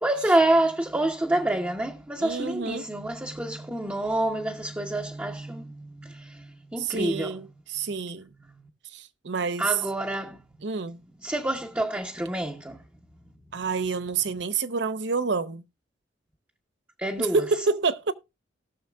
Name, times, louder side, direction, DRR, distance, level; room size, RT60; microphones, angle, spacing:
voice 1, 0.0-7.4 8.5-8.7 9.6-10.4 11.2-12.8 13.5-13.6 17.0-17.4, right 1 dB, 10° right, 0.8 m, -27 dB
voice 2, 2.2-2.9 6.8-8.3 8.9-9.8 10.6-11.0 13.5-15.6 17.2-18.1, right 4 dB, 70° right, 0.7 m, -28 dB
18.5 x 6.5 x 2.3 m
head